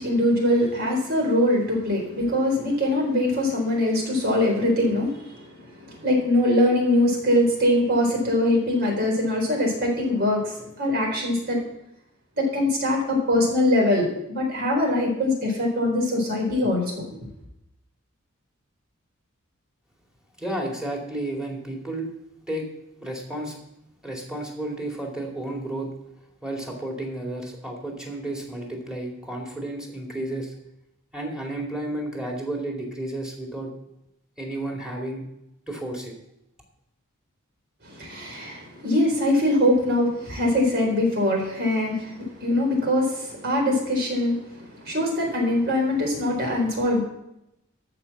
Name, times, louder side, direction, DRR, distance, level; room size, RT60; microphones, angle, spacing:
voice 1, 0.0-11.6 12.4-17.0 37.8-47.0, left 1 dB, 50° right, -1 dB, 4.2 m, -23 dB
voice 2, 20.4-22.1 22.5-22.7 23.0-23.6 24.0-25.9 26.4-30.5 31.1-33.7 34.4-35.2 35.7-36.1, right 1 dB, 5° right, 0 dB, 2.4 m, -32 dB
13.5 x 5.3 x 7.2 m, 0.85 s
head